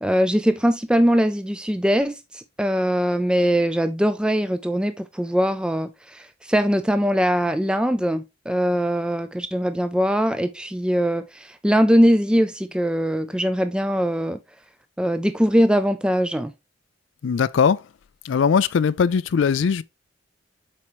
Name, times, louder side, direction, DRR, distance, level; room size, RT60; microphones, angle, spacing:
voice 1, 0.0-14.4 15.0-16.5, equal, 5° right, 0.4 m, -21 dB
voice 2, 17.2-17.8 18.2-19.8, left 6 dB, 80° left, 0.4 m, -20 dB
7.4 x 4.4 x 3.0 m
head